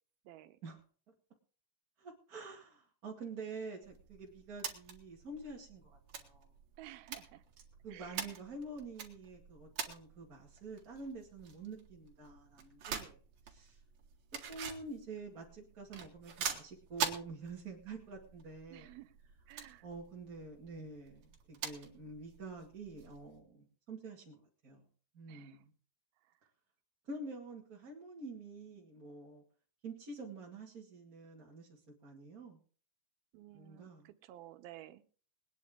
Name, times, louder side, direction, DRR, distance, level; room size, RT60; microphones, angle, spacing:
voice 1, 0.3-0.6 6.8-7.4 7.9-8.3 18.7-19.1 19.5-19.9 25.3-25.6 33.3-35.0, right 15 dB, 80° right, 10 dB, 2.7 m, -53 dB
voice 2, 2.0-6.5 7.8-13.2 13.4-13.8 14.5-18.9 19.8-24.4 24.6-24.8 25.1-25.7 27.0-29.4 29.8-32.6 33.5-34.1, right 3 dB, 30° right, -3 dB, 1.9 m, -47 dB
sound 1, 3.8-23.4, right 7 dB, 55° right, 3.0 m, -46 dB
21.5 x 9.8 x 3.7 m, 0.41 s
omnidirectional pair, 4.3 m